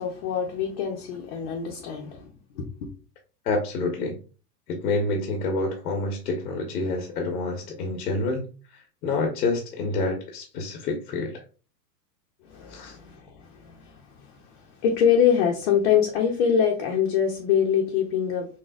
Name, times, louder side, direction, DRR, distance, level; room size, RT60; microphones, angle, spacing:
voice 1, 0.0-2.9 12.4-18.5, left 8 dB, 40° left, 0.7 m, -25 dB
voice 2, 3.4-4.2 4.7-8.5 8.7-11.4 12.7-13.0, left 3 dB, 90° left, 1.2 m, -28 dB
6.3 x 2.2 x 2.4 m
supercardioid pair, 165°, 48 cm